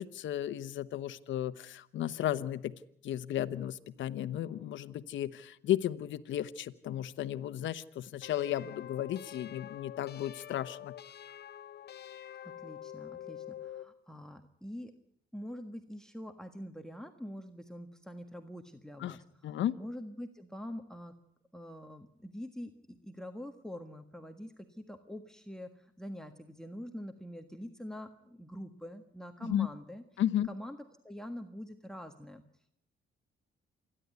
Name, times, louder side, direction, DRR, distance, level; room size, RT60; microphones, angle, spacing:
voice 1, 0.0-2.7 3.0-10.9 19.0-19.2 19.4-19.8 29.4-29.7 30.2-30.5, left 11 dB, 75° left, 13 dB, 1.0 m, -34 dB
sound 1, 8.2-13.9, left 11 dB, 55° left, 0.8 m, -46 dB
voice 2, 12.4-14.9 15.3-19.2 19.8-21.2 21.5-30.0 30.5-30.8 31.0-32.4, equal, 5° left, 7 dB, 1.5 m, -45 dB
27.5 x 11.0 x 9.5 m, 0.74 s
cardioid pair, 90°, 20 cm